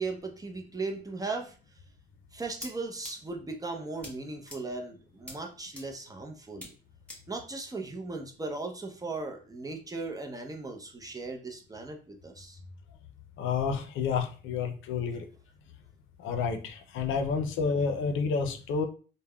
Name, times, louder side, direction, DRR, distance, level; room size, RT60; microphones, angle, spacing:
voice 1, 0.0-1.6 2.3-6.7 7.3-12.6, right 3 dB, 20° right, 3 dB, 0.5 m, -37 dB
sound 1, 2.4-2.7 3.0-3.1 4.0-4.1 4.5-4.6 5.3-5.4 5.8-5.9 6.6-6.7 7.1-7.2, left 1 dB, 5° left, 1.1 m, -42 dB
voice 2, 13.4-15.3 16.2-18.9, left 5 dB, 80° left, 6 dB, 0.5 m, -30 dB
3.3 x 2.1 x 2.2 m, 0.38 s
cardioid pair, 90°, 20 cm